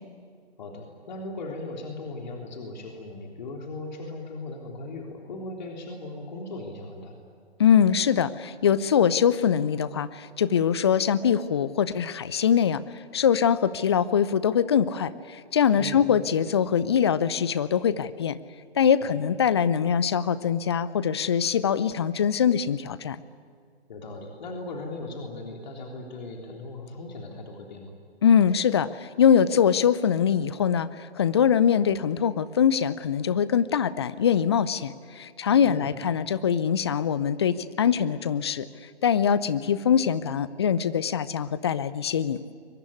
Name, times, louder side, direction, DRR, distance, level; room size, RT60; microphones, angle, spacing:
voice 1, 0.6-7.2 15.8-16.0 19.0-19.1 23.9-27.9 35.6-35.9, left 2 dB, 45° left, 2 dB, 3.6 m, -38 dB
voice 2, 7.6-12.8 13.1-18.4 18.7-23.2 28.2-38.7 39.0-42.5, left 8 dB, 25° left, 17 dB, 0.6 m, -23 dB
23.0 x 22.5 x 9.6 m, 2.1 s
figure-of-eight pair, 135°, 33 cm